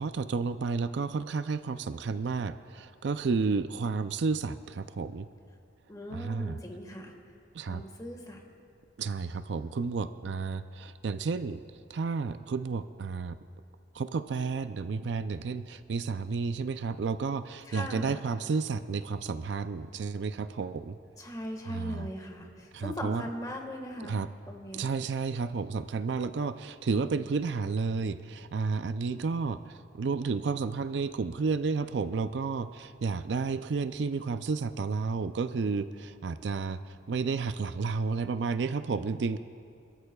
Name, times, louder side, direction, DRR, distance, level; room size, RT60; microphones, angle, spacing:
voice 1, 0.0-5.3 6.1-6.6 7.5-7.8 9.0-11.6 11.9-13.4 13.9-21.0 21.6-22.1 22.7-23.2 24.0-24.3 24.7-29.6 29.9-36.8 37.1-39.4, right 4 dB, 70° right, 12 dB, 0.4 m, -31 dB
voice 2, 5.9-7.1 7.7-8.4 17.7-18.3 21.2-24.2 24.5-24.8, equal, 20° left, 2 dB, 1.6 m, -39 dB
28.5 x 13.0 x 2.3 m, 2.4 s
head